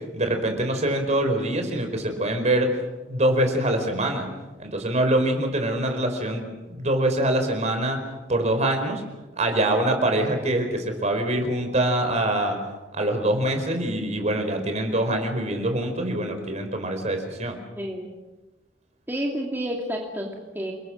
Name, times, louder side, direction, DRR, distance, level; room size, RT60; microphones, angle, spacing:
voice 1, 0.1-2.8 3.1-4.3 4.6-8.0 8.3-9.0 9.4-12.6 12.9-17.6, right 1 dB, 40° right, 5 dB, 4.8 m, -24 dB
voice 2, 17.8-18.1 19.1-20.7, equal, 10° right, -1 dB, 2.7 m, -30 dB
29.5 x 22.0 x 6.4 m, 1.1 s
head